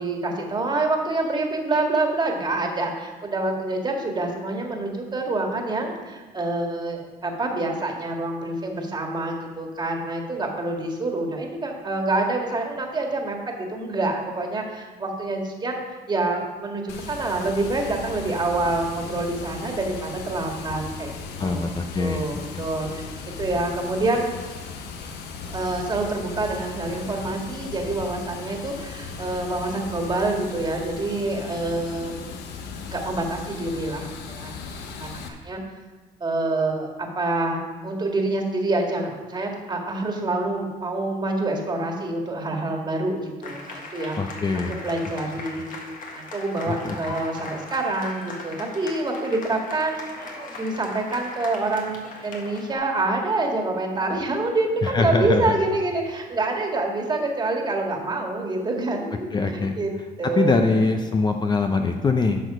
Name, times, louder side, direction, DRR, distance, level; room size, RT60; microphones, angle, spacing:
voice 1, 0.0-21.1 21.4-23.0 23.4-24.3 25.5-32.3 32.9-34.5 35.0-35.6 36.2-44.4 44.7-45.7 46.1-60.7, right 2 dB, 25° right, 2 dB, 1.8 m, -27 dB
Water, 16.9-35.3, left 5 dB, 80° left, 1.1 m, -37 dB
voice 2, 21.4-22.3 22.5-22.6 44.2-44.8 46.8-46.9 54.8-55.6 59.3-59.7 60.4-62.4, left 3 dB, 25° left, 5 dB, 0.6 m, -22 dB
sound 1, 43.4-52.7, left 3 dB, 50° left, 1.7 m, -39 dB
11.0 x 6.4 x 4.9 m, 1.3 s
cardioid pair, 110°, 17 cm